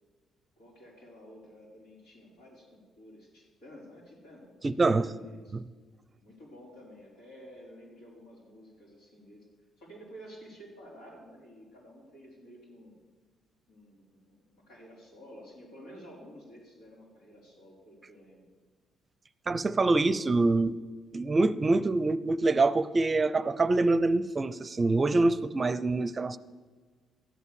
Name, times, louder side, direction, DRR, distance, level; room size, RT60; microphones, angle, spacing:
voice 1, 0.6-5.6 6.2-9.5 9.8-12.9 13.7-18.4, equal, 85° left, 4.5 m, -51 dB
voice 2, 4.6-5.0 5.5-5.6 19.5-20.8 21.1-26.4, right 3 dB, 35° right, 0.6 m, -25 dB
13.5 x 8.2 x 7.0 m
hypercardioid pair, 55°, 0 cm